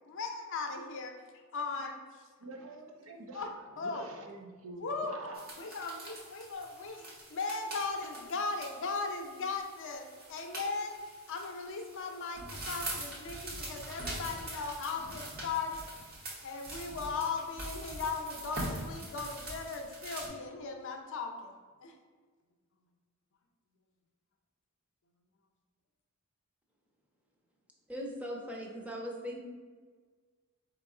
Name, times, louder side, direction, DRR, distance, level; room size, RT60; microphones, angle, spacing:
voice 1, 0.1-1.1 1.5-2.0 3.3-3.5 3.8-4.1 4.8-5.1 5.6-7.0 7.3-11.0 11.3-15.8 16.4-21.5 21.8-21.9, left 4 dB, 60° left, 4 dB, 0.6 m, -37 dB
voice 2, 2.4-5.5, right 2 dB, 70° right, 3 dB, 0.6 m, -47 dB
sound 1, 5.3-20.3, right 1 dB, 45° right, 1.0 m, -43 dB
voice 3, 27.9-29.4, equal, 5° right, -1 dB, 0.6 m, -39 dB
4.5 x 3.0 x 3.7 m, 1.5 s
head